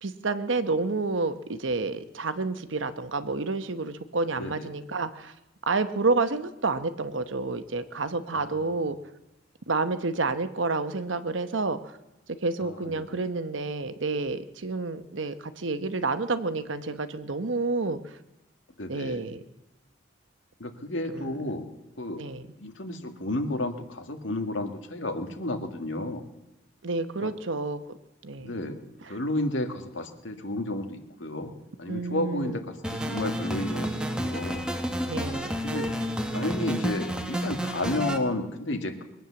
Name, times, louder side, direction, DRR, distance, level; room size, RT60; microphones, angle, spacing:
voice 1, 0.0-5.3 5.7-9.0 9.7-11.9 12.4-18.2 18.9-19.4 21.1-21.3 22.2-22.4 26.8-27.8 28.2-28.5 31.9-32.6 35.1-35.6, right 3 dB, 85° right, 11 dB, 1.0 m, -29 dB
voice 2, 4.4-4.7 8.3-8.8 12.6-13.2 18.8-19.3 20.6-21.7 22.0-22.2 22.6-26.3 27.2-27.3 28.4-28.8 29.1-31.5 31.8-34.7 35.6-35.9 36.3-39.0, left 1 dB, 80° left, 5 dB, 1.9 m, -32 dB
sound 1, 32.8-38.2, equal, 5° right, 1.2 m, -30 dB
22.0 x 9.2 x 7.1 m, 0.97 s
head